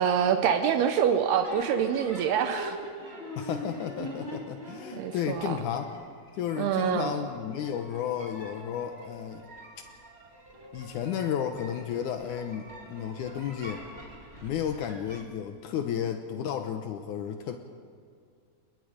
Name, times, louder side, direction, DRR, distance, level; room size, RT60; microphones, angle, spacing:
voice 1, 0.0-2.8 4.9-5.6 6.6-7.1, right 8 dB, 75° right, 7 dB, 2.7 m, -26 dB
sound 1, 1.4-15.2, right 1 dB, 20° right, 2.2 m, -44 dB
voice 2, 3.4-5.9 6.3-9.4 10.7-13.8 14.4-17.6, left 9 dB, 85° left, 6 dB, 1.8 m, -33 dB
28.5 x 22.0 x 5.1 m, 2.2 s
omnidirectional pair, 4.8 m